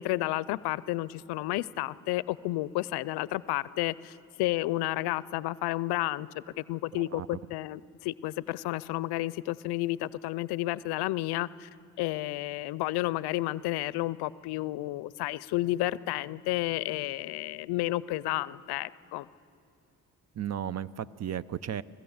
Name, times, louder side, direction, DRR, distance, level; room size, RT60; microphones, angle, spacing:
voice 1, 0.0-6.3 6.6-11.7 12.0-19.3, left 17 dB, 85° left, 20 dB, 0.5 m, -31 dB
voice 2, 6.9-7.4 20.4-21.8, right 10 dB, 45° right, 19 dB, 0.6 m, -35 dB
25.5 x 16.0 x 7.2 m, 2.6 s
supercardioid pair, 70°, 38 cm